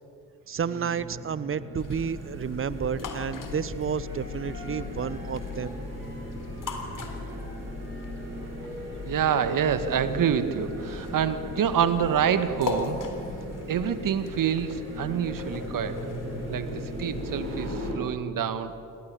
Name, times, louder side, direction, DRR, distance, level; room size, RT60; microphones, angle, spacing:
voice 1, 0.5-5.8, right 7 dB, 30° right, 17 dB, 1.1 m, -31 dB
sound 1, 0.5-18.0, right 1 dB, 70° right, 5.9 m, -39 dB
sound 2, 1.8-17.9, left 4 dB, 45° left, 3.5 m, -39 dB
sound 3, 3.4-3.5 4.0-9.6 10.4-11.3, left 2 dB, 90° left, 4.4 m, -49 dB
voice 2, 9.0-13.0 13.7-16.0 16.5-18.8, right 8 dB, 45° right, 11 dB, 2.0 m, -27 dB
29.0 x 21.5 x 8.7 m, 2.7 s
figure-of-eight pair, 45°, 44 cm